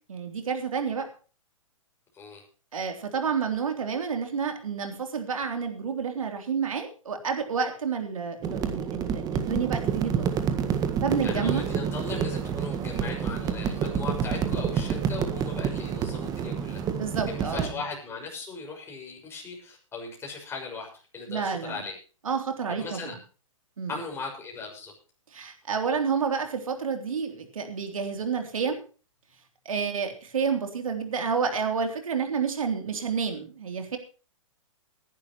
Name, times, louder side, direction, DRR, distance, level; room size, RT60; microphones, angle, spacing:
voice 1, 0.1-1.1 2.7-10.3 11.0-11.6 16.9-17.8 21.3-21.8 22.2-23.1 23.8-23.9 25.3-28.8 29.7-34.0, right 6 dB, 75° right, 5 dB, 3.4 m, -29 dB
sound 1, 8.4-17.7, right 7 dB, 20° right, 1.6 m, -28 dB
voice 2, 11.2-16.8 17.3-21.9 22.8-23.1 23.9-24.9, left 4 dB, 15° left, 0 dB, 6.0 m, -38 dB
20.0 x 11.0 x 3.1 m, 0.36 s
hypercardioid pair, 130°, 17 cm